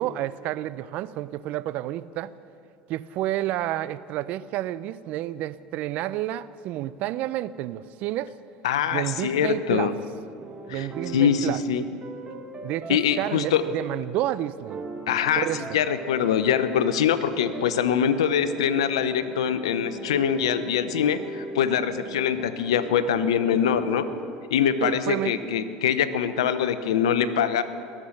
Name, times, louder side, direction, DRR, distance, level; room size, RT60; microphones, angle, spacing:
voice 1, 0.0-2.3 2.9-8.3 8.9-9.9 10.7-11.6 12.6-14.8 15.4-15.8 24.8-25.3, right 14 dB, 60° right, 16 dB, 0.5 m, -30 dB
voice 2, 8.6-9.9 10.7-10.9 11.1-11.8 12.9-13.6 15.1-15.5 15.7-24.1 24.5-27.6, left 8 dB, 85° left, 12 dB, 0.7 m, -23 dB
sound 1, 9.9-24.2, right 2 dB, 35° right, 1.8 m, -40 dB
21.5 x 7.5 x 6.4 m, 2.4 s
hypercardioid pair, 80°, 3 cm